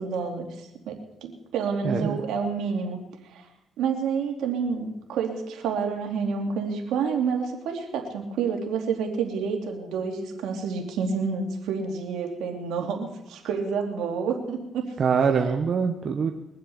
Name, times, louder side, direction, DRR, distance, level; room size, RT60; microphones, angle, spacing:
voice 1, 0.0-3.0 3.3-3.4 3.8-14.9 15.4-15.5, right 5 dB, 85° right, 2 dB, 2.9 m, -29 dB
voice 2, 1.8-2.2 15.0-16.3, right 6 dB, 50° right, 4 dB, 1.2 m, -23 dB
22.5 x 7.7 x 7.1 m, 0.91 s
cardioid pair, 90°, 0 cm